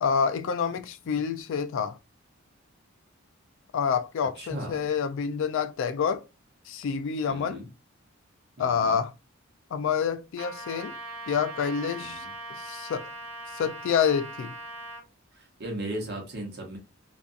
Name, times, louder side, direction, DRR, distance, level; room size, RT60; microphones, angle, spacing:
voice 1, 0.0-2.0 3.7-6.2 6.7-7.6 8.6-9.1 9.7-10.9 11.3-12.2 12.6-13.1 13.5-14.5, left 6 dB, 65° left, 0.3 m, -27 dB
voice 2, 4.4-4.8 7.3-7.7 8.6-9.0 12.0-12.3 15.3-16.8, right 1 dB, 55° right, 0.9 m, -37 dB
Trumpet, 10.4-15.0, right 2 dB, 85° right, 0.7 m, -40 dB
2.6 x 2.4 x 2.3 m
head